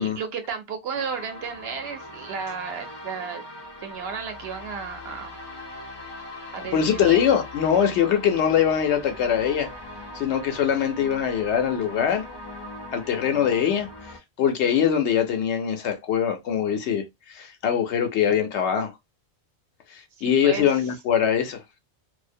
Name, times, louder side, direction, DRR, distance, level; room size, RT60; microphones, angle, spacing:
voice 1, 0.0-3.4 3.8-5.3 6.5-7.2 20.2-20.8, right 6 dB, 65° right, 0.8 m, -33 dB
sound 1, 0.9-14.2, left 1 dB, 35° left, 0.4 m, -40 dB
voice 2, 6.7-9.7 10.1-12.2 12.9-13.9 14.4-18.9 19.9-21.6, left 8 dB, 80° left, 0.9 m, -22 dB
2.4 x 2.0 x 2.5 m
omnidirectional pair, 1.2 m